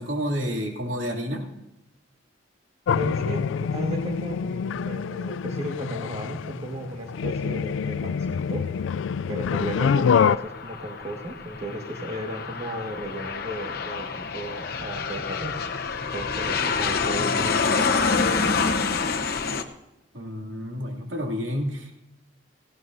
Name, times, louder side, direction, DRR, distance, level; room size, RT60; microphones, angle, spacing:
voice 1, 0.0-1.5 20.1-22.0, equal, 85° right, 1 dB, 2.6 m, -30 dB
sound 1, 2.9-10.4, left 6 dB, 85° left, 0.3 m, -26 dB
voice 2, 2.9-8.6 9.3-15.5 16.1-18.8, right 1 dB, 35° right, 1 dB, 1.6 m, -34 dB
Aircraft, 9.4-19.6, left 5 dB, 55° left, 1.0 m, -27 dB
18.0 x 16.0 x 2.7 m, 0.91 s
head